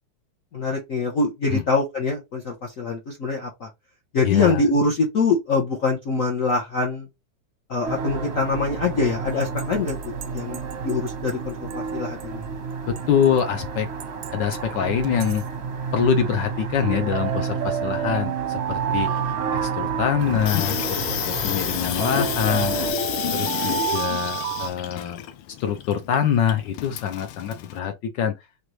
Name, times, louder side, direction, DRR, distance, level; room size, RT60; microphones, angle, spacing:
voice 1, 0.5-3.7 4.1-7.1 7.7-12.4, left 3 dB, 55° left, 1.0 m, -24 dB
voice 2, 4.2-4.7 12.9-13.9 14.3-15.4 15.9-19.2 19.5-22.8 23.3-25.2 25.6-28.4, left 8 dB, 70° left, 1.2 m, -24 dB
sound 1, 7.8-22.9, right 5 dB, 50° right, 0.8 m, -31 dB
sound 2, 9.4-11.3 11.7-11.8 12.2-12.3 13.0-13.4 14.0-14.6 15.0-15.4 17.1-20.9 22.0-24.7, right 11 dB, 90° right, 1.4 m, -30 dB
Water tap faucet / Sink (filling or washing), 20.2-27.8, left 12 dB, 85° left, 1.4 m, -30 dB
3.9 x 3.2 x 3.1 m
omnidirectional pair, 2.3 m